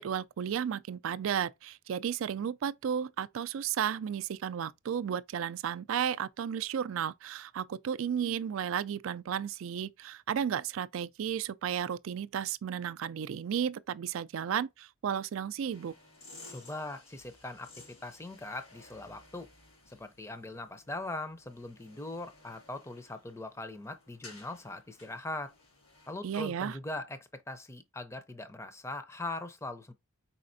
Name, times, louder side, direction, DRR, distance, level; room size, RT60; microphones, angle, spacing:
voice 1, 0.0-16.0 26.2-26.8, right 8 dB, 70° right, 0.3 m, -33 dB
sound 1, 15.7-26.2, left 2 dB, 90° left, 2.5 m, -56 dB
voice 2, 16.5-17.7 18.0-19.5 19.9-25.5 26.1-29.9, left 2 dB, 15° left, 0.5 m, -41 dB
4.8 x 4.2 x 2.6 m
head